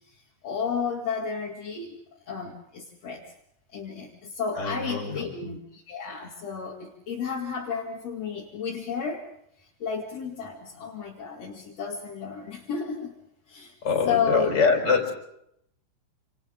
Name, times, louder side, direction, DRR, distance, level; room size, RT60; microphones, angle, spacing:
voice 1, 0.4-2.0 2.3-3.2 3.7-9.2 9.8-13.1 13.5-13.7 14.0-14.6, left 6 dB, 45° left, -2 dB, 2.3 m, -32 dB
voice 2, 4.5-5.3 13.8-15.1, left 5 dB, 25° left, 2 dB, 4.3 m, -24 dB
29.5 x 27.5 x 3.8 m, 0.74 s
omnidirectional pair, 5.7 m